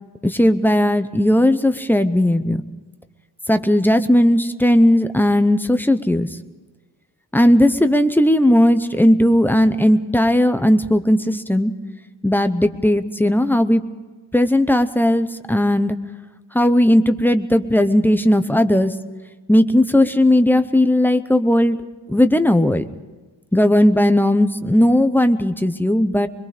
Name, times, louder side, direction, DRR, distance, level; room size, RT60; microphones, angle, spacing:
voice 1, 0.2-2.6 3.5-6.3 7.3-11.7 12.2-13.8 14.3-16.0 16.5-18.9 19.5-21.8 22.1-22.8 23.5-26.3, left 1 dB, 5° left, 9 dB, 0.7 m, -16 dB
24.0 x 22.0 x 5.0 m, 1.3 s
wide cardioid pair, 180°, 43 cm